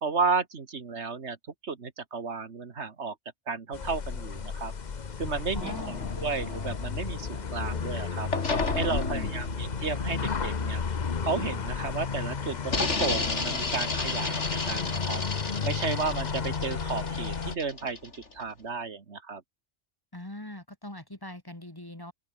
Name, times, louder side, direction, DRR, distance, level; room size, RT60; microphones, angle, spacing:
voice 1, 0.0-1.4 1.6-3.2 3.5-4.7 5.2-5.7 6.2-8.3 8.8-10.8 11.2-15.2 15.6-19.4, right 4 dB, 65° right, 2.0 m, -33 dB
sound 1, 3.7-17.6, left 5 dB, 40° left, 1.0 m, -33 dB
voice 2, 5.5-6.0 8.9-9.4 20.1-22.1, left 1 dB, 20° left, 2.2 m, -41 dB
sound 2, 5.6-7.9 8.3-11.9 12.6-18.4, left 3 dB, 70° left, 3.3 m, -33 dB
open air
omnidirectional pair, 1.3 m